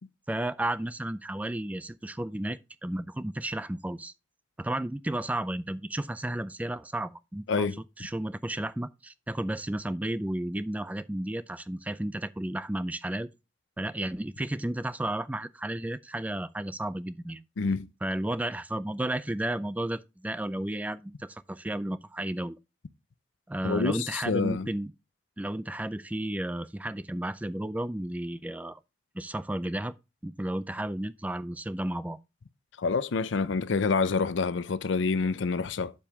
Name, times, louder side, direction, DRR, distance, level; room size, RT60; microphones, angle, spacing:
voice 1, 0.3-4.1 4.6-7.7 8.0-13.3 13.8-17.4 18.0-22.6 23.5-24.9 25.4-28.8 29.1-29.9 30.2-32.2, right 1 dB, 10° right, 0.3 m, -33 dB
voice 2, 7.5-7.8 17.6-17.9 23.6-24.7 32.8-35.9, left 4 dB, 90° left, 0.5 m, -27 dB
7.3 x 7.0 x 3.5 m
head